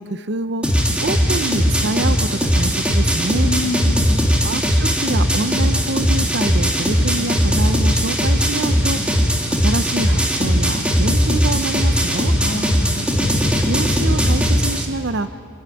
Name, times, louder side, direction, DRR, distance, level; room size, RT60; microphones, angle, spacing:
voice 1, 0.0-3.5 4.4-9.0 9.5-12.3 13.6-15.3, right 2 dB, 55° right, 12 dB, 0.8 m, -26 dB
sound 1, 0.6-14.8, equal, 5° right, 2.2 m, -18 dB
voice 2, 3.4-4.4 12.4-13.6, left 1 dB, 60° left, 1 dB, 2.6 m, -28 dB
26.0 x 11.0 x 9.2 m, 2.3 s
head